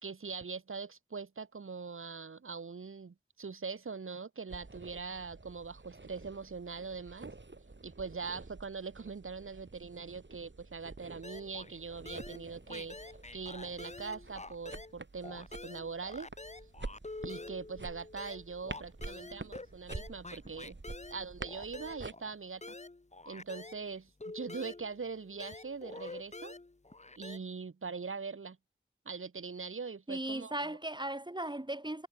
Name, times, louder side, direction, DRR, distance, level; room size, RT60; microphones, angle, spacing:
voice 1, 0.0-7.3 7.8-13.0 13.3-16.3 17.2-20.8 21.1-22.7 23.3-26.5 27.2-28.6 29.0-30.8, right 5 dB, 85° right, 1.0 m, -42 dB
sound 1, 4.5-22.1, right 3 dB, 60° right, 5.7 m, -49 dB
sound 2, 11.2-11.8 12.1-15.0 15.2-23.8 24.2-27.4, left 2 dB, 35° left, 1.2 m, -47 dB
voice 2, 30.1-32.1, right 1 dB, 20° right, 2.0 m, -37 dB
wide cardioid pair, 50°, 21 cm